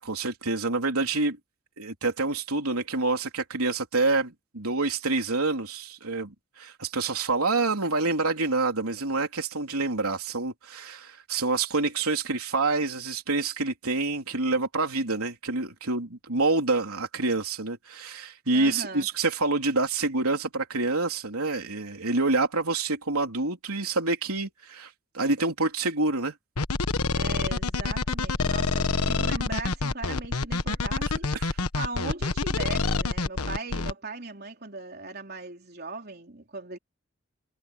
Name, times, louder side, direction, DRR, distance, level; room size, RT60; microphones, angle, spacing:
voice 1, 0.0-1.4 1.8-26.3 31.3-31.5, right 3 dB, 80° right, 3.6 m, -27 dB
voice 2, 18.5-19.1 27.1-36.8, right 3 dB, 45° right, 3.9 m, -39 dB
sound 1, 26.6-33.9, left 3 dB, 85° left, 1.4 m, -27 dB
head